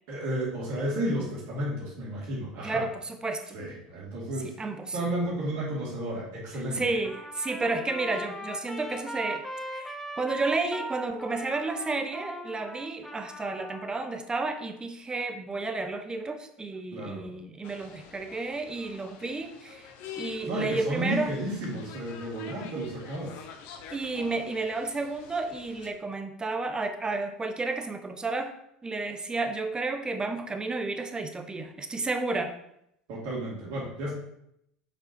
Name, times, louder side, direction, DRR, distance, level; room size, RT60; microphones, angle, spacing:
voice 1, 0.1-2.9 3.5-4.5 4.9-7.0 16.9-17.3 20.4-23.4 33.1-34.1, right 1 dB, 60° right, -4 dB, 2.5 m, -32 dB
voice 2, 2.6-3.6 4.4-5.0 6.7-19.9 20.2-21.3 23.9-28.5 28.8-32.6, right 3 dB, 20° right, 7 dB, 1.0 m, -32 dB
Trumpet, 7.0-14.1, equal, 5° left, 1.1 m, -39 dB
sound 1, 17.6-25.9, left 8 dB, 60° left, 1.0 m, -47 dB
7.0 x 5.2 x 4.4 m, 0.77 s
hypercardioid pair, 75°, 4 cm